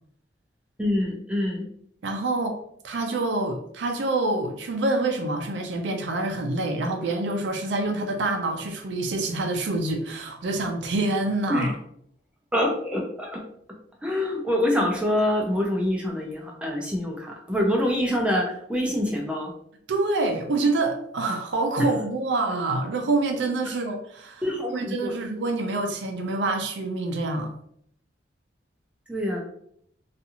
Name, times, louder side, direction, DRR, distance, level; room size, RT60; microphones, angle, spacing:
voice 1, 0.8-1.6 11.5-11.7 12.5-13.4 14.0-19.5 24.4-25.2 29.1-29.4, left 1 dB, 5° right, -1 dB, 0.4 m, -25 dB
voice 2, 2.0-2.6 2.8-11.7 19.9-24.4 24.7-27.5, right 2 dB, 75° right, 3 dB, 0.4 m, -26 dB
2.6 x 2.4 x 2.8 m, 0.68 s
head